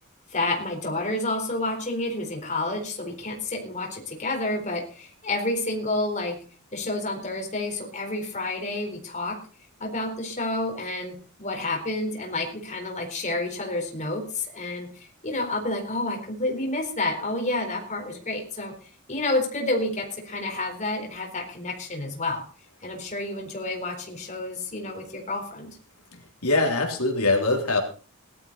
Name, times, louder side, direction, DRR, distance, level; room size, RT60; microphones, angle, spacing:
voice 1, 0.3-6.4 6.7-9.4 9.8-18.7 19.1-22.4 22.8-25.7, left 2 dB, 35° left, 2 dB, 4.1 m, -29 dB
voice 2, 26.1-27.8, left 2 dB, 85° left, 2 dB, 3.5 m, -23 dB
17.5 x 12.5 x 4.1 m, 0.38 s
head